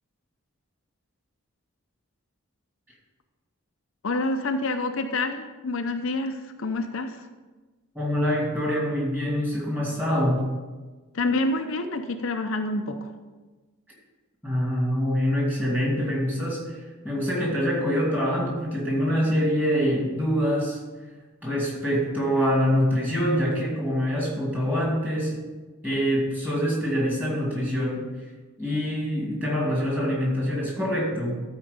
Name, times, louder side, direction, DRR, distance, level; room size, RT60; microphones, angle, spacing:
voice 1, 4.0-7.3 11.1-13.1, left 2 dB, 60° left, 6 dB, 0.6 m, -27 dB
voice 2, 7.9-10.4 14.4-20.8 21.4-25.4 25.8-28.0 28.6-31.4, equal, 10° right, -4 dB, 2.4 m, -25 dB
13.5 x 4.5 x 5.3 m, 1.3 s
head